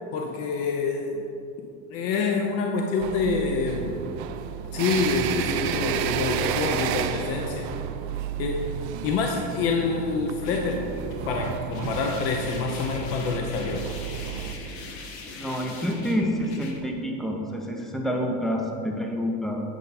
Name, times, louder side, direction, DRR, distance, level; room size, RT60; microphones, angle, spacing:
voice 1, 0.1-1.3 1.9-3.9 4.7-7.7 8.4-8.7 9.0-10.9 11.3-13.8, left 4 dB, 45° left, 2 dB, 0.6 m, -27 dB
sound 1, 3.0-14.5, right 8 dB, 75° right, 0.5 m, -31 dB
sound 2, 10.4-16.8, left 3 dB, 75° left, 1.3 m, -41 dB
voice 2, 15.4-19.6, equal, ahead, 1 dB, 0.5 m, -28 dB
8.9 x 5.4 x 4.1 m, 2.6 s
cardioid pair, 155°, 33 cm